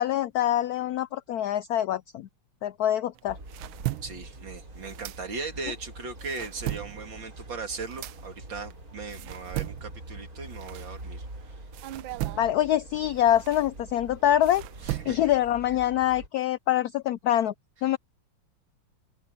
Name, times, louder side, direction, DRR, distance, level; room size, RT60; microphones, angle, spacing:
voice 1, 0.0-2.3 2.6-3.4 12.4-14.6 15.1-17.5 17.8-18.0, left 12 dB, 80° left, 0.8 m, -25 dB
sound 1, 3.2-5.7 6.1-11.4 11.7-15.5, right 16 dB, 85° right, 1.4 m, -38 dB
sound 2, 3.3-16.3, right 1 dB, 45° right, 7.0 m, -45 dB
voice 2, 4.0-11.6 14.8-15.3, right 4 dB, 70° right, 3.3 m, -38 dB
open air
omnidirectional pair, 2.1 m